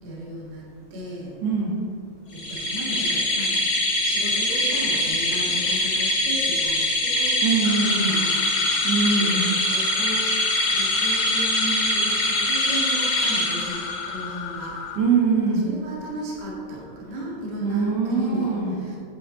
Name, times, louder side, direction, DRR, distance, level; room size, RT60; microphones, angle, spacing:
voice 1, 0.0-0.6 0.9-1.3 2.3-3.7 4.0-7.4 8.0-9.5 9.7-10.2 10.7-14.8 15.5-19.0, right 1 dB, 50° right, -4 dB, 2.1 m, -35 dB
voice 2, 1.4-1.7 7.4-8.2 8.8-9.5 15.0-15.7 17.6-18.8, right 4 dB, 80° right, -6 dB, 1.9 m, -23 dB
sound 1, 2.3-14.2, left 1 dB, 65° left, 2.1 m, -23 dB
sound 2, 7.6-15.0, left 6 dB, 85° left, 3.0 m, -34 dB
9.0 x 8.5 x 4.0 m, 2.4 s
omnidirectional pair, 5.8 m